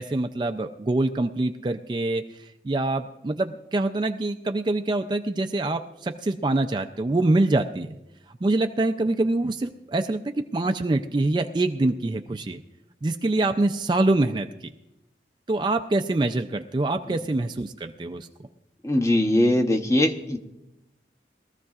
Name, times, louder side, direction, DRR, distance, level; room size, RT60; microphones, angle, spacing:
voice 1, 0.0-8.0 8.4-12.6 13.0-14.5 15.5-18.3, right 2 dB, 25° right, 6 dB, 0.4 m, -25 dB
voice 2, 18.8-20.4, left 1 dB, 15° left, 4 dB, 0.8 m, -21 dB
22.0 x 14.0 x 2.4 m, 0.92 s
head